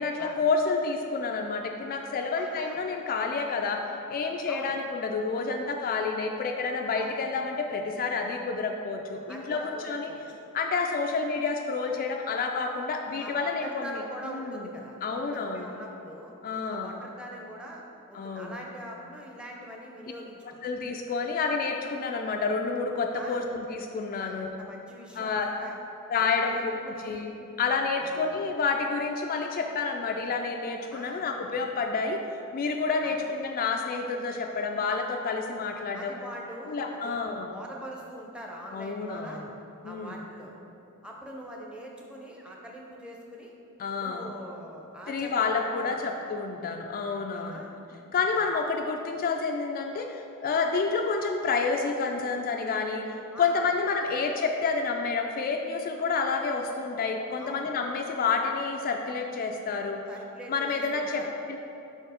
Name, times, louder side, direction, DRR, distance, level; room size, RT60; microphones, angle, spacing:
voice 1, 0.0-3.8 4.1-10.1 10.5-14.0 14.3-14.7 15.0-15.7 16.4-17.0 18.1-18.6 20.6-24.5 25.2-25.5 26.1-26.6 27.0-27.3 27.6-32.2 32.5-36.1 36.7-37.5 38.7-39.5 39.8-40.2 43.8-44.3 45.1-47.6 48.1-60.0 60.5-61.6, left 4 dB, 40° left, 3 dB, 0.3 m, -29 dB
voice 2, 2.4-2.8 4.5-4.7 6.9-7.1 9.3-10.2 13.2-16.3 16.7-17.8 18.1-20.6 23.2-23.5 24.2-25.8 26.2-27.2 28.0-28.2 30.9-31.3 33.0-33.1 35.9-39.4 39.8-40.5 41.0-43.5 44.0-46.1 47.3-47.7 48.3-48.5 53.3-53.7 54.1-54.2 57.4-57.7 60.1-61.3, equal, 5° right, -2 dB, 0.6 m, -43 dB
4.8 x 4.4 x 5.0 m, 2.8 s
head